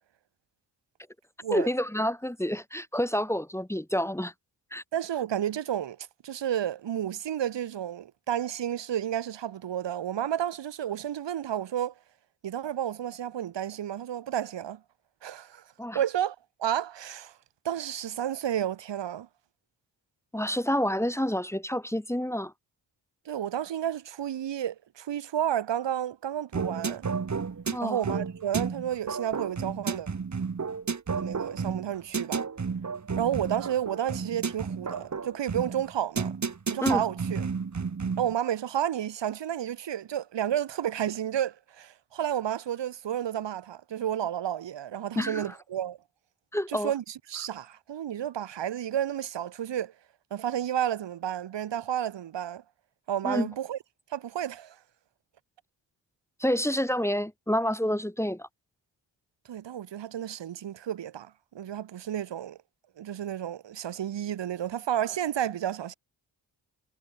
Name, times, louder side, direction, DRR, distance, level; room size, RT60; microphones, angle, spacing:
voice 1, 1.5-4.3 4.7-4.8 15.8-16.0 20.3-22.5 27.7-28.0 36.8-37.0 45.2-45.5 46.5-46.9 53.2-53.5 56.4-58.5, equal, 5° left, 2.0 m, -28 dB
voice 2, 4.9-11.9 12.4-14.8 15.2-15.6 15.9-17.4 17.6-19.3 23.2-27.1 27.8-30.1 31.2-32.4 33.2-36.4 36.7-37.5 38.2-46.0 46.7-49.9 50.3-52.6 53.1-53.8 54.1-54.8 59.5-62.6 63.0-65.9, right 10 dB, 75° right, 2.7 m, -31 dB
sound 1, 26.5-38.3, right 5 dB, 40° right, 3.1 m, -32 dB
cardioid pair, 70°, 43 cm